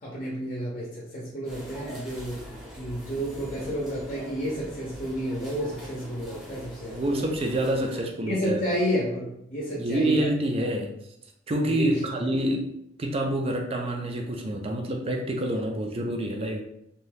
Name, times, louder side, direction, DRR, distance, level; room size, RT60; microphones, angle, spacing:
voice 1, 0.0-2.4 2.8-7.0 8.3-10.2 11.7-12.0 12.2-12.3, equal, 35° left, -4 dB, 0.7 m, -31 dB
sound 1, 1.4-8.0, equal, ahead, 0.7 m, -43 dB
voice 2, 6.9-8.7 9.8-10.9 11.5-12.7 13.0-16.6, right 1 dB, 30° right, 3 dB, 0.4 m, -27 dB
2.7 x 2.3 x 3.3 m, 0.74 s
head